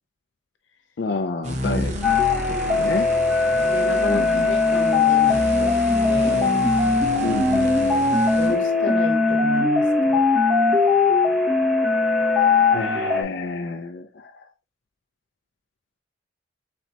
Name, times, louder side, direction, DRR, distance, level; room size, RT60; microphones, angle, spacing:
voice 1, 1.0-2.0 2.5-3.1 4.1-4.5 7.2-8.0 12.7-14.5, left 4 dB, 60° left, 0.4 m, -29 dB
sound 1, 1.4-8.6, equal, 35° right, 0.8 m, -31 dB
sound 2, 2.0-13.2, left 3 dB, ahead, 1.0 m, -20 dB
voice 2, 3.7-5.7 6.0-6.6 8.4-10.2, left 2 dB, 90° left, 1.0 m, -32 dB
4.3 x 4.2 x 2.9 m
head